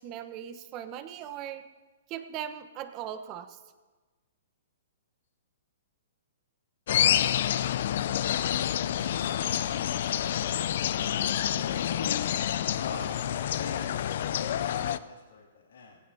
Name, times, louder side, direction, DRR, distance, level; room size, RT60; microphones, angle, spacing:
voice 1, 0.0-1.6 2.1-3.6, right 10 dB, 35° right, 10 dB, 1.0 m, -39 dB
sound 1, 6.9-15.0, left 10 dB, 60° left, 0.5 m, -28 dB
voice 2, 11.0-12.3 12.7-16.0, left 5 dB, 75° left, -3 dB, 2.5 m, -42 dB
18.0 x 16.0 x 2.8 m, 1.3 s
hypercardioid pair, 135°, 0 cm